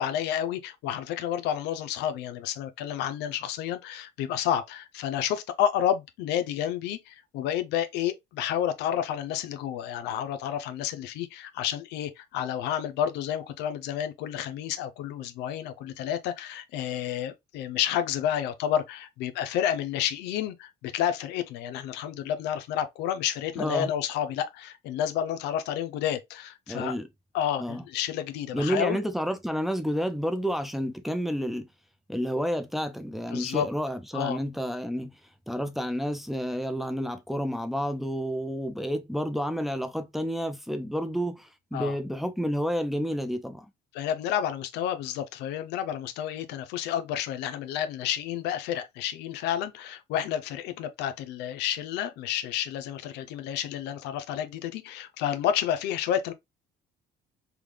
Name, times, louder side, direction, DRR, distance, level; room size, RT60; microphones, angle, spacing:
voice 1, 0.0-26.9 27.3-29.0 33.3-33.7 34.1-34.4 41.7-41.9 43.9-56.3, left 10 dB, 85° left, 0.5 m, -30 dB
voice 2, 23.6-23.9 26.7-27.1 27.6-27.8 28.5-31.7 32.1-35.2 35.5-43.7, equal, ahead, 0.5 m, -30 dB
3.5 x 2.2 x 3.1 m
cardioid pair, 110°, 17 cm